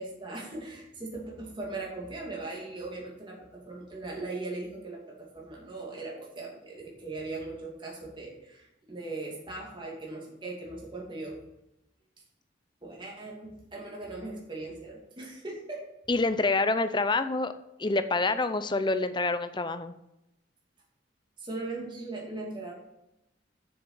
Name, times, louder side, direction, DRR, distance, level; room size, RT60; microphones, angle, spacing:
voice 1, 0.0-11.4 12.8-15.9 21.4-22.7, right 2 dB, 25° right, -2 dB, 2.6 m, -39 dB
voice 2, 16.1-17.5 17.8-19.9, left 3 dB, 25° left, 11 dB, 0.6 m, -27 dB
7.1 x 7.0 x 6.8 m, 0.88 s
head